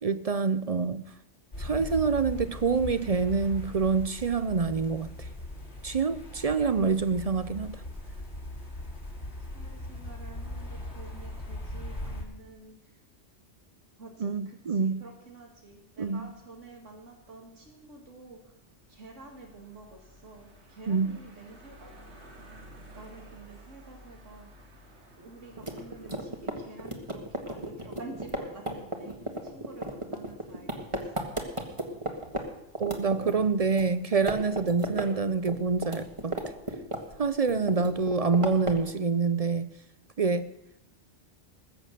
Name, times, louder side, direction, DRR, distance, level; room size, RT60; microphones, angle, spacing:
voice 1, 0.0-1.0 1.6-5.1 5.8-7.8 14.2-15.0 16.0-16.3 20.9-21.1 32.8-36.4 37.2-39.7 40.2-40.4, right 5 dB, 45° right, 13 dB, 0.5 m, -26 dB
sound 1, 1.5-12.2, left 1 dB, 65° left, 3.1 m, -39 dB
voice 2, 6.6-7.3 9.5-13.0 14.0-18.5 18.9-22.3 23.0-24.7 25.2-31.3 31.7-32.0, right 3 dB, 85° right, 1 dB, 2.4 m, -49 dB
sound 2, 15.8-28.0, right 1 dB, 70° right, 2.5 m, -54 dB
sound 3, 25.6-32.4 32.8-33.9 34.1-35.1 35.3-37.2 37.5-38.9, right 1 dB, 25° right, 1.7 m, -34 dB
20.0 x 7.6 x 6.6 m, 0.89 s
omnidirectional pair, 1.2 m